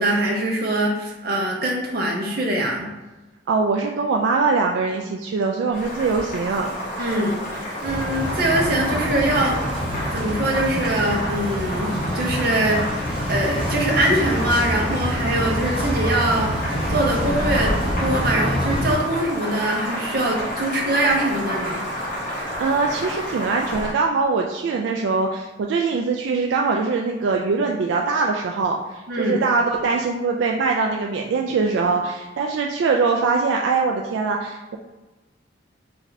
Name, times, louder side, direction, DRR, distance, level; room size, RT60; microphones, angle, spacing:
voice 1, 0.0-2.9 7.0-9.6 10.1-21.8 29.1-29.4, right 1 dB, 55° right, -1 dB, 0.8 m, -23 dB
voice 2, 3.5-6.7 22.6-34.8, right 4 dB, 80° right, 1 dB, 0.3 m, -22 dB
Boiling, 5.7-23.9, equal, 45° left, 1.4 m, -30 dB
sound 1, 7.8-18.9, equal, 30° right, 0.9 m, -26 dB
3.3 x 2.6 x 4.0 m, 1.1 s
head